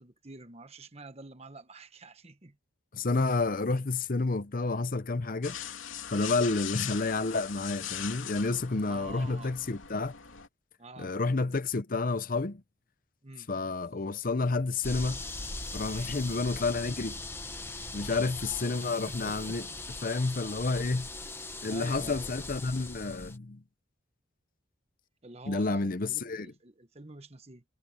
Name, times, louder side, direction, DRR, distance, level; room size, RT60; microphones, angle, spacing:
voice 1, 0.0-2.6 6.3-6.6 8.8-9.6 10.8-11.1 13.2-13.5 15.9-16.2 18.1-18.3 19.0-19.8 21.6-22.3 25.2-27.6, right 2 dB, 30° right, 1.3 m, -48 dB
voice 2, 2.9-5.6 6.1-10.1 11.0-12.6 13.5-15.2 15.7-17.2 17.9-19.6 20.0-21.1 21.6-23.6 25.5-26.5, left 3 dB, 45° left, 0.7 m, -30 dB
sound 1, 5.4-10.5, left 9 dB, 85° left, 3.2 m, -40 dB
sound 2, 14.8-23.4, left 2 dB, 10° left, 1.1 m, -40 dB
head